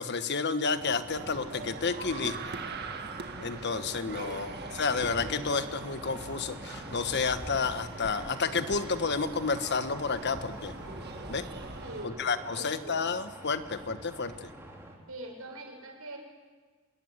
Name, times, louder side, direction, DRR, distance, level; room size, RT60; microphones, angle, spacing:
voice 1, 0.0-2.4 3.4-10.7 11.3-11.4 12.0-14.5, left 4 dB, 55° left, 11 dB, 1.3 m, -31 dB
sound 1, 0.7-14.9, equal, 10° right, 4.3 m, -45 dB
sound 2, 1.1-12.1, right 4 dB, 50° right, 1.8 m, -42 dB
voice 2, 4.1-4.7 11.8-12.3 12.5-13.0 15.1-16.2, right 2 dB, 85° right, 2 dB, 6.5 m, -44 dB
25.5 x 20.5 x 9.7 m, 1.4 s
head